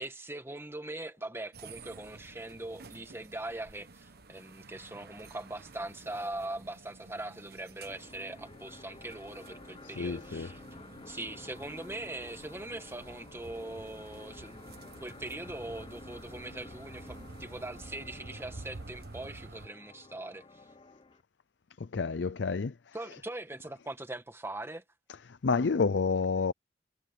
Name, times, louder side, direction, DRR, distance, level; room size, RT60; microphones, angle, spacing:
voice 1, 0.0-10.6 11.1-20.6 22.9-24.8, right 2 dB, 15° right, 1.9 m, -41 dB
sound 1, 1.5-19.7, right 3 dB, 60° right, 1.2 m, -51 dB
sound 2, 7.9-21.2, left 2 dB, 30° left, 0.8 m, -51 dB
voice 2, 10.0-10.5 21.8-22.9 25.3-26.5, left 4 dB, 70° left, 0.5 m, -29 dB
head